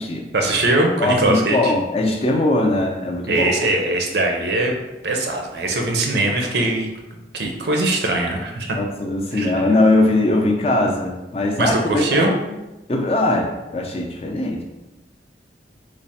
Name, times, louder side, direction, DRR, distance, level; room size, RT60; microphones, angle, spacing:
voice 1, 0.3-1.7 3.3-4.7 5.0-6.9 7.3-8.8 9.3-9.6 11.6-12.4, right 2 dB, 65° right, 2 dB, 0.5 m, -21 dB
voice 2, 1.0-3.5 8.8-12.3 12.9-14.6, left 2 dB, 35° left, 1 dB, 0.4 m, -20 dB
3.2 x 2.1 x 4.1 m, 1.0 s
head